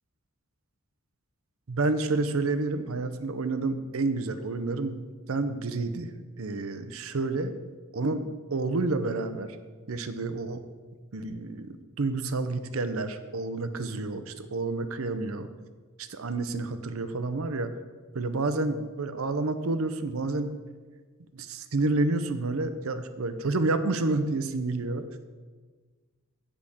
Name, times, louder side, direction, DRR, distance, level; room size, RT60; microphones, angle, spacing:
voice 1, 1.7-7.5 7.9-9.6 9.9-10.6 11.1-15.5 16.0-17.7 18.1-20.5 21.3-25.0, right 3 dB, 70° right, 10 dB, 0.7 m, -29 dB
8.4 x 5.0 x 7.2 m, 1.4 s
head